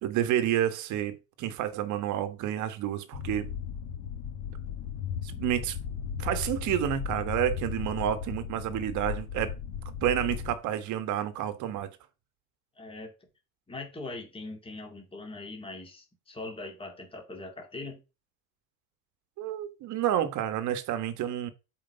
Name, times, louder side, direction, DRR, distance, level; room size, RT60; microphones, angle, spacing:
voice 1, 0.0-3.5 5.2-5.8 6.2-9.5 10.0-11.9 19.4-21.5, right 11 dB, 45° right, 1.4 m, -29 dB
sound 1, 3.1-10.5, left 8 dB, 60° left, 1.5 m, -36 dB
voice 2, 12.8-13.1 13.7-18.0, left 2 dB, 15° left, 2.4 m, -41 dB
7.6 x 5.0 x 5.2 m
supercardioid pair, 125°, 40 cm